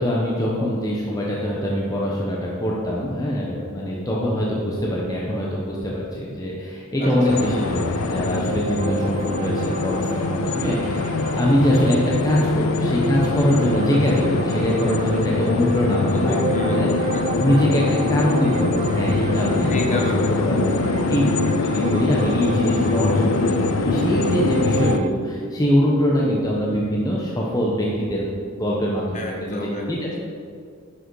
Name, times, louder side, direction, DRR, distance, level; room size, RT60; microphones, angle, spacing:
voice 1, 0.0-16.4 16.7-16.9 17.4-20.7 21.1-21.2 21.6-29.6 29.9-30.1, equal, 20° left, -4 dB, 1.0 m, -23 dB
voice 2, 7.0-7.5 16.1-17.6 19.7-21.1 29.1-30.2, left 1 dB, 35° left, 1 dB, 1.4 m, -29 dB
sound 1, 7.0-25.1, right 4 dB, 35° right, 0.3 m, -31 dB
sound 2, 7.3-25.0, left 4 dB, 85° left, 0.5 m, -24 dB
10.5 x 6.5 x 4.8 m, 2.3 s
head